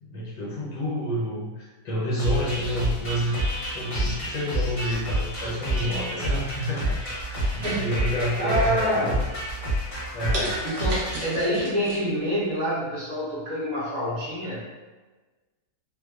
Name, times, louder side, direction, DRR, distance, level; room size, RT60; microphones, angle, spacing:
voice 1, 0.0-3.4 3.7-6.9 7.5-9.2 10.1-10.6, equal, 75° left, -7 dB, 1.2 m, -29 dB
sound 1, 2.2-11.3, equal, 45° left, 0.7 m, -29 dB
sound 2, 7.4-8.4 8.8-9.2 9.7-9.8 10.3-12.0 12.4-12.5, right 1 dB, 65° right, 1.1 m, -34 dB
voice 2, 7.6-9.2 10.6-14.6, equal, 50° right, -10 dB, 1.1 m, -27 dB
2.9 x 2.1 x 2.3 m, 1.3 s
omnidirectional pair, 1.9 m